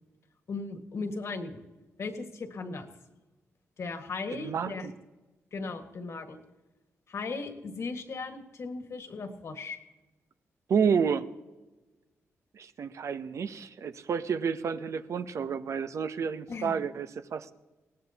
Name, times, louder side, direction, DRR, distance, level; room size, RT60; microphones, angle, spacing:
voice 1, 0.5-1.6 2.0-2.9 3.8-4.9 5.5-6.4 7.1-9.8 16.5-16.7, left 4 dB, 60° left, 6 dB, 1.8 m, -37 dB
voice 2, 4.3-4.9 10.7-11.3 12.5-17.5, right 6 dB, 65° right, 11 dB, 0.8 m, -30 dB
20.5 x 17.5 x 2.9 m, 1.1 s
cardioid pair, 85°, 5 cm